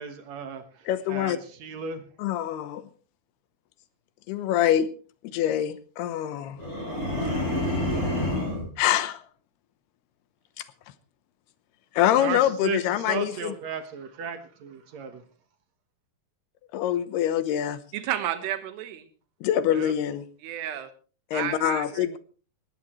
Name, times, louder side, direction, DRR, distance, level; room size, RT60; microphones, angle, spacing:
voice 1, 0.0-2.0 12.1-15.2 19.7-20.0, right 6 dB, 60° right, 9 dB, 2.0 m, -35 dB
voice 2, 0.9-1.4 2.2-2.8 4.3-4.9 5.3-6.6 8.8-9.2 12.0-13.5 16.7-17.8 19.4-20.2 21.3-22.2, left 11 dB, 80° left, 13 dB, 3.0 m, -25 dB
sound 1, 6.6-8.7, left 1 dB, 20° left, 7.4 m, -28 dB
voice 3, 17.9-19.1 20.4-20.9 21.3-22.2, right 11 dB, 90° right, 10 dB, 3.5 m, -32 dB
19.0 x 18.0 x 3.1 m, 0.38 s
omnidirectional pair, 4.6 m